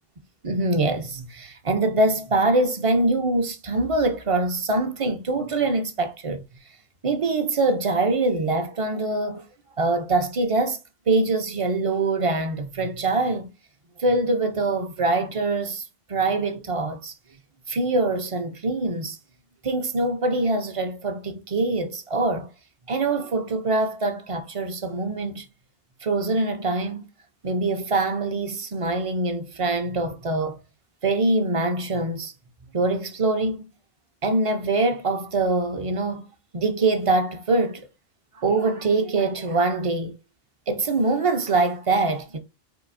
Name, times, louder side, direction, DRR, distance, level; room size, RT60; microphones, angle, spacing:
voice 1, 0.4-6.4 7.0-9.4 9.8-10.8 11.1-13.5 14.0-17.1 17.7-19.2 19.6-22.5 22.9-25.4 26.0-27.1 27.4-30.6 31.0-32.3 32.7-33.6 34.2-36.2 36.5-37.9 38.3-40.1 40.7-42.4, right 2 dB, 40° right, 0.6 m, -24 dB
4.8 x 2.6 x 2.5 m
omnidirectional pair, 1.0 m